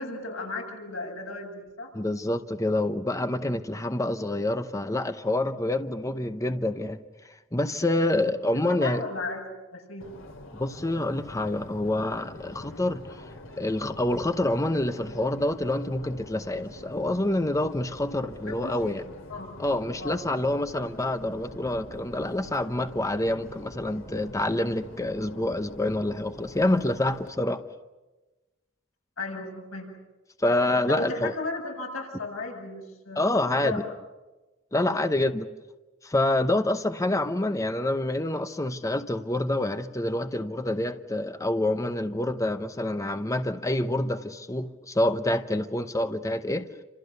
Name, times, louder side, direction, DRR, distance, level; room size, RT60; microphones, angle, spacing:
voice 1, 0.0-1.9 8.5-9.4 9.7-10.1 18.5-19.5 20.0-20.2 29.2-29.9 30.9-33.8 34.8-35.0, left 2 dB, 85° left, 1 dB, 7.5 m, -35 dB
voice 2, 1.9-7.0 7.5-9.0 10.6-13.3 13.6-19.0 19.6-27.6 30.4-31.3 33.2-33.8 34.7-35.5 36.0-46.7, left 1 dB, 15° left, 9 dB, 0.9 m, -27 dB
Subway metro underground, 10.0-27.3, left 1 dB, 70° left, 2.8 m, -45 dB
29.5 x 27.0 x 6.8 m, 1.1 s
head